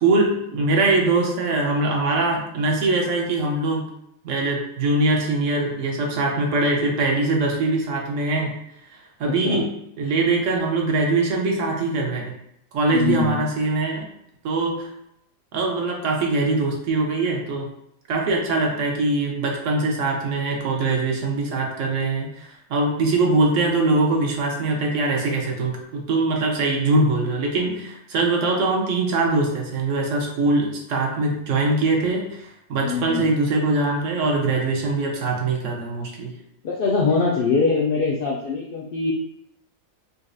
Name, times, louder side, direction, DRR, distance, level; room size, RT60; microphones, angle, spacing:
voice 1, 0.0-3.9 4.2-8.5 9.2-12.3 12.7-14.0 14.4-14.9 15.5-17.7 18.1-36.3, right 2 dB, 70° right, 0 dB, 1.0 m, -22 dB
voice 2, 12.9-13.4 32.8-33.3 36.6-39.1, left 4 dB, 70° left, -3 dB, 0.5 m, -22 dB
3.9 x 2.3 x 2.6 m, 0.77 s
omnidirectional pair, 1.4 m